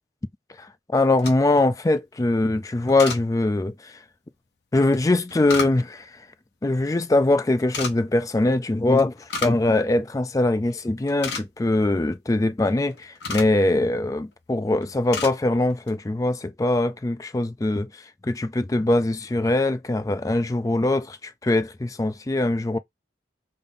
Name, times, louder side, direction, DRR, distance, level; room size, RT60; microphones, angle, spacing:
voice 1, 0.6-4.0 4.7-6.2 6.6-22.8, left 2 dB, 20° left, 0.3 m, -22 dB
sound 1, 1.0-1.7 2.9-3.2 4.9-6.1 7.6-7.9 9.0-9.7 10.0-10.1 10.6-10.7 11.0-11.8 12.7-13.6 14.3-14.6 14.8-15.4 15.7-16.0, left 4 dB, 65° left, 0.8 m, -32 dB
3.5 x 2.6 x 3.7 m
head